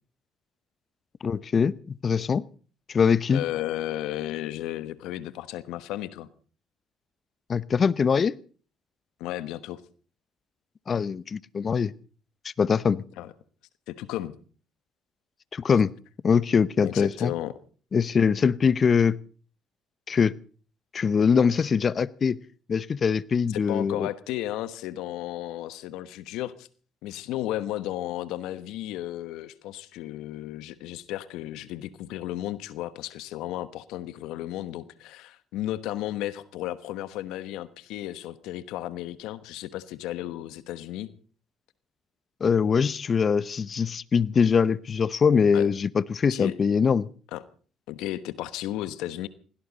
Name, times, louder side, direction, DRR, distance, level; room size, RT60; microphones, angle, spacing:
voice 1, 1.2-1.7 2.0-2.4 2.9-3.4 7.5-8.3 10.9-11.9 12.6-13.0 15.5-15.9 16.2-17.3 17.9-19.2 20.1-20.3 20.9-22.4 22.7-24.1 42.4-47.1, left 6 dB, 45° left, 20 dB, 0.8 m, -22 dB
voice 2, 3.3-6.3 9.2-9.8 13.2-13.3 13.9-14.4 16.8-17.5 23.5-26.7 27.0-41.1 45.5-45.6 46.3-46.5 47.3-47.4 47.9-49.3, left 14 dB, 80° left, 14 dB, 1.2 m, -34 dB
20.5 x 17.5 x 4.1 m, 0.40 s
supercardioid pair, 70°, 0 cm